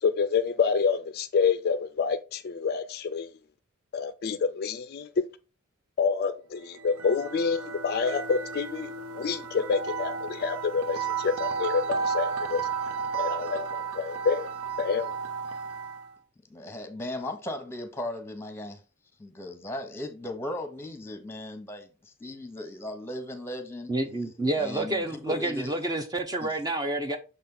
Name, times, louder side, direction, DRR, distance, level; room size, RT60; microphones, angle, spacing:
voice 1, 0.0-3.3 3.9-5.3 6.0-12.7 13.2-14.5 14.8-15.1, left 5 dB, 45° left, 0.3 m, -28 dB
sound 1, 6.7-16.1, right 5 dB, 80° right, 0.6 m, -33 dB
voice 2, 16.5-18.8 19.2-23.9 24.6-25.7 26.4-26.5, left 1 dB, 10° left, 1.0 m, -37 dB
voice 3, 23.9-27.2, right 2 dB, 20° right, 0.6 m, -29 dB
6.4 x 4.2 x 3.8 m
head